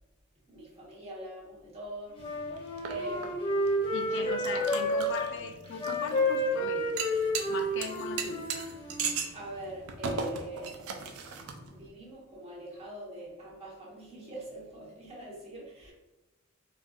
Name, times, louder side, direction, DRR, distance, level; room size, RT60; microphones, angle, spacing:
voice 1, 0.5-3.5 4.1-4.5 9.3-10.8 11.6-15.9, right 1 dB, 30° right, -5 dB, 1.1 m, -43 dB
Wind instrument woodwind instrument, 2.2-5.3 5.7-9.2, left 1 dB, 25° left, 0.7 m, -30 dB
sound 1, 2.2-11.9, right 5 dB, 85° right, 0.5 m, -39 dB
voice 2, 3.9-6.9 7.5-8.5, left 5 dB, 60° left, 6 dB, 0.3 m, -39 dB
4.4 x 2.5 x 2.4 m, 1.1 s
head